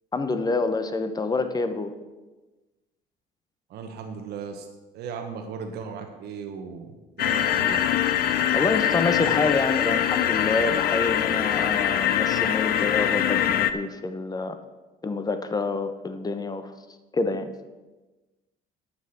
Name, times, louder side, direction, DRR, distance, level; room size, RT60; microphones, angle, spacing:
voice 1, 0.1-1.9 8.5-14.6 15.0-16.7 17.1-17.5, left 3 dB, 20° left, 9 dB, 1.0 m, -27 dB
voice 2, 3.7-4.7 4.9-7.8, right 6 dB, 75° right, 4 dB, 1.3 m, -37 dB
sound 1, 7.2-13.7, left 10 dB, 65° left, 0.6 m, -23 dB
8.7 x 5.9 x 8.0 m, 1.2 s
cardioid pair, 110°, 17 cm